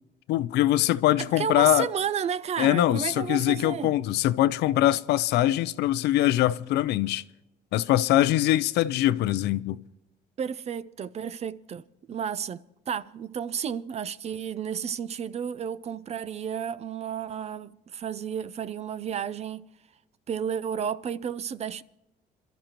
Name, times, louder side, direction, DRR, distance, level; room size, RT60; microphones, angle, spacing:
voice 1, 0.3-1.9 2.6-7.2 7.7-9.8, left 14 dB, 80° left, 0.5 m, -23 dB
voice 2, 1.2-3.9 10.4-19.7 20.3-21.8, right 8 dB, 40° right, 0.5 m, -32 dB
26.5 x 13.0 x 3.0 m
cardioid pair, 110°, 17 cm